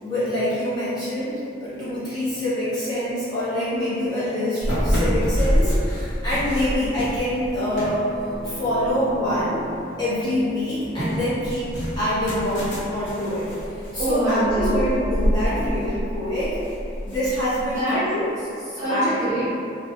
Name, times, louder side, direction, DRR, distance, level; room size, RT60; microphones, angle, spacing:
voice 1, 0.0-1.3 1.6-8.1 8.4-9.6 10.0-16.6 17.0-18.3 18.9-19.2, left 1 dB, 25° left, -14 dB, 1.0 m, -25 dB
sound 1, 4.6-9.8 10.2-17.8, equal, 85° left, 0.8 m, -27 dB
sound 2, 7.8-11.5, right 1 dB, 60° right, 0.5 m, -39 dB
voice 2, 14.0-14.9 17.7-18.0 18.4-19.5, right 1 dB, 15° right, -13 dB, 0.8 m, -24 dB
2.9 x 2.2 x 2.8 m, 2.6 s
head